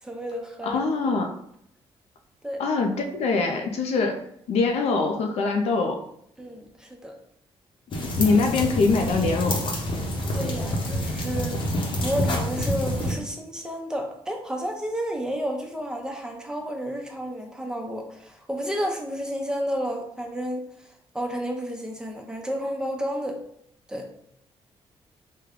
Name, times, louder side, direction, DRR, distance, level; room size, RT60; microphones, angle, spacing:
voice 1, 0.0-1.1 2.4-2.6 6.4-7.2 10.3-11.6 12.0-23.4 23.9-24.1, equal, 5° right, 2 dB, 0.6 m, -31 dB
voice 2, 0.6-1.3 2.6-4.2 4.5-6.0 8.2-9.8, left 4 dB, 85° left, 5 dB, 0.5 m, -23 dB
sound 1, 7.9-13.1, left 1 dB, 50° left, 0.8 m, -27 dB
3.3 x 2.2 x 3.6 m, 0.71 s
cardioid pair, 90°, 11 cm